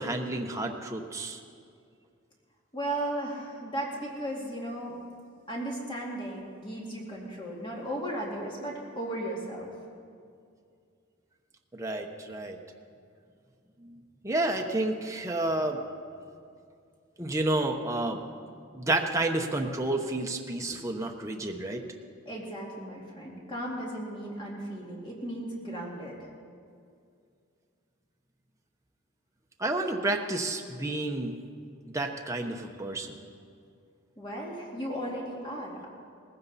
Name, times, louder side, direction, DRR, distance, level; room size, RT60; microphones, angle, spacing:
voice 1, 0.0-1.4 11.7-12.6 13.8-13.9 14.2-15.8 17.2-18.2 18.7-21.8 29.6-31.3 31.9-33.2, right 2 dB, 15° right, 2 dB, 0.8 m, -30 dB
voice 2, 2.7-5.0 5.5-9.7 22.3-26.3 34.2-35.9, right 1 dB, 25° left, -3 dB, 2.3 m, -36 dB
19.0 x 15.5 x 4.1 m, 2.3 s
head